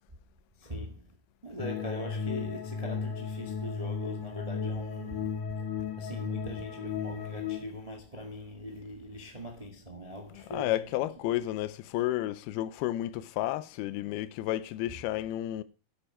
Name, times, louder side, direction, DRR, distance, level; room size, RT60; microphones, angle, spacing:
voice 1, 0.6-1.1 1.4-5.3 6.0-10.9 11.2-11.3, equal, 25° right, 0.7 m, -41 dB
sound 1, 1.6-7.6, left 6 dB, 65° left, 3.3 m, -35 dB
voice 2, 10.5-15.6, left 14 dB, 85° left, 2.7 m, -31 dB
10.5 x 8.9 x 4.8 m
omnidirectional pair, 4.3 m